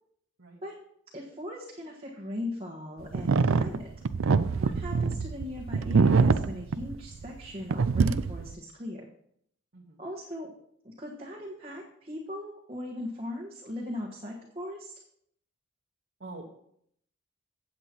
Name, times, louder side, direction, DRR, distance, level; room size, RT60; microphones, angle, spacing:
voice 1, 0.4-0.6 9.7-10.0 16.2-16.5, right 2 dB, 60° right, -2 dB, 1.4 m, -44 dB
voice 2, 1.1-3.9 4.6-9.1 10.0-10.5 10.8-14.9, left 1 dB, 30° right, -4 dB, 1.4 m, -39 dB
sound 1, 3.1-7.5 7.7-8.5, right 4 dB, 80° right, 0.4 m, -24 dB
16.0 x 7.7 x 3.0 m, 0.70 s
head